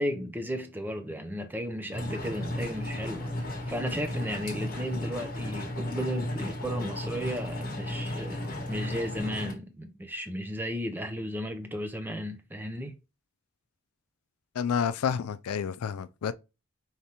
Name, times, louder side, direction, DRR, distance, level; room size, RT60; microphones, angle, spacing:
voice 1, 0.0-12.9, equal, 10° right, 0.5 m, -34 dB
sound 1, 1.9-9.5, left 1 dB, 45° left, 1.2 m, -35 dB
voice 2, 14.6-16.3, left 7 dB, 85° left, 0.4 m, -29 dB
5.1 x 3.2 x 2.9 m
head